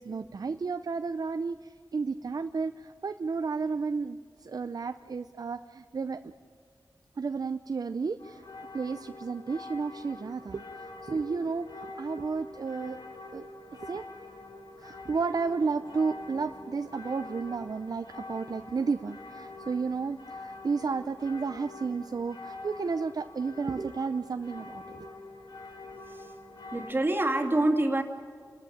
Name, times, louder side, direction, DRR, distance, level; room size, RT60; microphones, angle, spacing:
voice 1, 0.0-6.3 7.2-8.4 8.7-13.0 13.3-13.5 13.8-14.0 14.8-25.1, right 4 dB, 55° right, 9 dB, 0.6 m, -32 dB
sound 1, 8.2-26.9, left 2 dB, 70° left, 2.5 m, -45 dB
voice 2, 26.7-28.0, right 1 dB, 30° right, 3 dB, 2.5 m, -26 dB
29.5 x 13.5 x 8.8 m, 2.1 s
wide cardioid pair, 95°, 8 cm